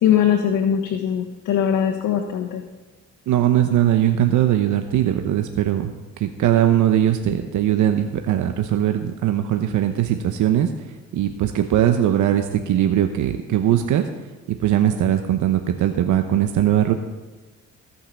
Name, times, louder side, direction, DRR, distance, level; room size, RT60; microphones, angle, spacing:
voice 1, 0.0-2.6, left 9 dB, 85° left, 1 dB, 1.3 m, -20 dB
voice 2, 3.3-5.9 6.2-10.7 11.1-14.0 14.6-16.9, right 11 dB, 80° right, 6 dB, 0.9 m, -20 dB
16.5 x 5.7 x 7.0 m, 1.3 s
cardioid pair, 90°, 30 cm